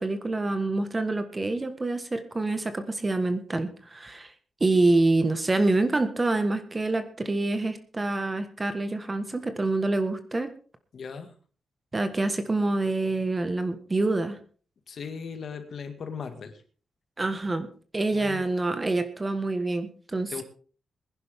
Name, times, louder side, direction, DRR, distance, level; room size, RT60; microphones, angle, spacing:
voice 1, 0.0-4.3 4.6-10.5 11.9-14.4 17.2-17.7 17.9-20.4, right 2 dB, 25° right, 9 dB, 1.5 m, -26 dB
voice 2, 10.9-11.3 14.9-16.6 18.1-18.4 20.3-20.4, left 6 dB, 65° left, 8 dB, 1.9 m, -37 dB
21.0 x 11.0 x 3.6 m, 0.41 s
wide cardioid pair, 115°, 0 cm